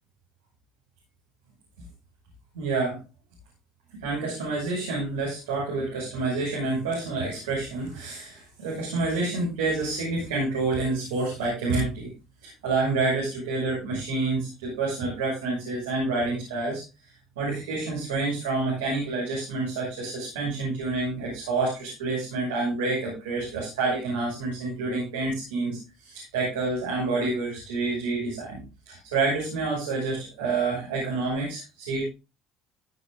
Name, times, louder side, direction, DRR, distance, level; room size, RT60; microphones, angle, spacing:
voice 1, 2.5-3.0 4.0-12.1 12.4-28.6 28.9-32.0, right 3 dB, 90° right, -3 dB, 6.2 m, -28 dB
16.5 x 6.8 x 3.8 m, 0.29 s
supercardioid pair, 85°, 0 cm